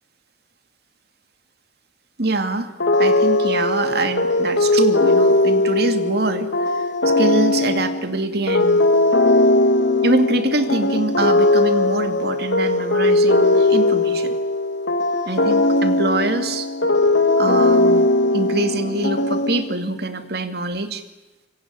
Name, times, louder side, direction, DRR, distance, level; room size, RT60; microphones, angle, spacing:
voice 1, 2.2-2.7 3.0-8.8 10.0-14.3 15.3-16.7 17.4-18.1 18.3-21.0, right 2 dB, 60° right, 8 dB, 2.4 m, -24 dB
sound 1, 2.8-20.0, left 2 dB, 90° left, 2.7 m, -19 dB
26.5 x 23.0 x 9.8 m, 1.0 s
head